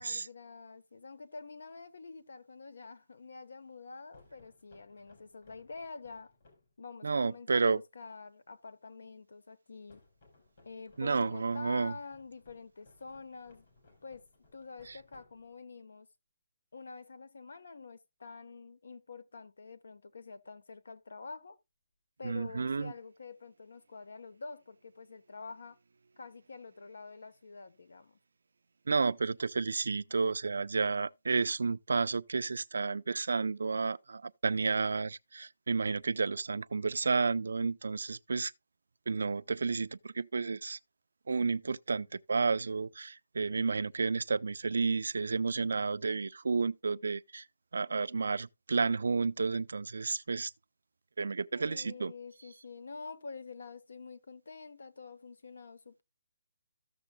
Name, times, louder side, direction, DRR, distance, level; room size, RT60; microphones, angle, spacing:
voice 1, 0.0-6.3 6.8-10.0 10.6-13.6 14.0-14.3 14.5-16.1 16.7-21.6 22.2-25.8 26.2-28.2 51.5-56.0, left 4 dB, 80° left, 1.0 m, -47 dB
sound 1, 4.1-6.8 9.9-15.8, left 3 dB, 45° left, 3.6 m, -64 dB
voice 2, 7.0-7.8 11.0-11.9 14.9-15.0 22.2-22.9 28.9-38.5 39.1-40.8 41.3-47.5 47.7-50.5 51.2-52.1, right 4 dB, 85° right, 0.4 m, -31 dB
14.5 x 6.8 x 2.2 m
hypercardioid pair, 170°, 0 cm